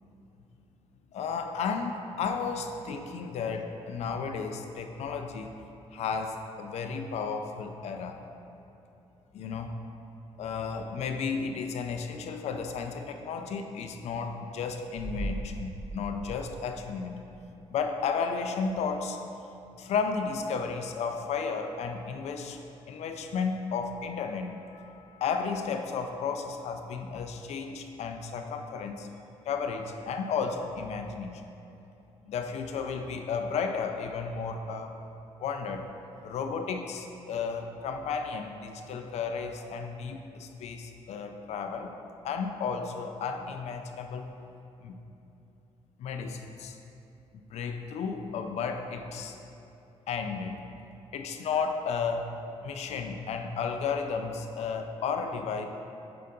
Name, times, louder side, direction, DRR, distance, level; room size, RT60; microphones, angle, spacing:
voice 1, 1.1-5.5 5.9-8.2 9.3-9.9 10.4-17.2 17.7-19.2 19.8-22.6 22.9-29.1 29.5-31.4 32.3-34.9 35.4-35.9 36.2-41.9 42.2-44.3 44.8-45.0 46.0-46.8 47.3-49.4 50.1-50.6 51.1-55.7, left 5 dB, 75° left, 6 dB, 0.5 m, -33 dB
sound 1, 14.9-17.6 17.9-18.0, right 1 dB, 90° right, 1.2 m, -39 dB
6.8 x 5.2 x 3.8 m, 2.9 s
cardioid pair, 120°, 11 cm